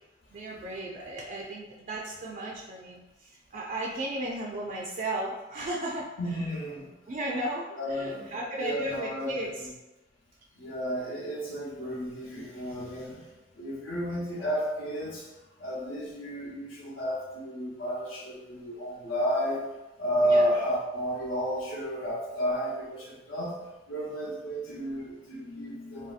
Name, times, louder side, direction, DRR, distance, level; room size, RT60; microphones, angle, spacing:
voice 1, 0.3-6.1 7.1-9.7 20.2-20.5, right 1 dB, 40° right, -3 dB, 0.3 m, -35 dB
voice 2, 6.2-6.9 7.8-9.7 10.6-15.3 15.6-19.6 20.0-23.6 23.9-26.1, equal, 85° left, -4 dB, 0.8 m, -32 dB
3.2 x 2.6 x 2.4 m, 1.0 s
head